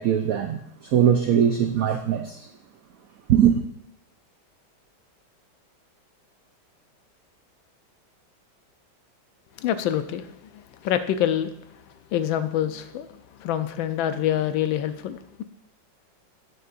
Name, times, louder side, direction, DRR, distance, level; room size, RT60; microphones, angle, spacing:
voice 1, 0.0-2.5 3.3-3.6, right 9 dB, 80° right, 6 dB, 0.7 m, -21 dB
voice 2, 9.6-11.5 12.1-13.1 13.4-15.4, left 10 dB, 80° left, 11 dB, 1.4 m, -26 dB
12.5 x 7.5 x 2.5 m, 0.79 s
omnidirectional pair, 2.1 m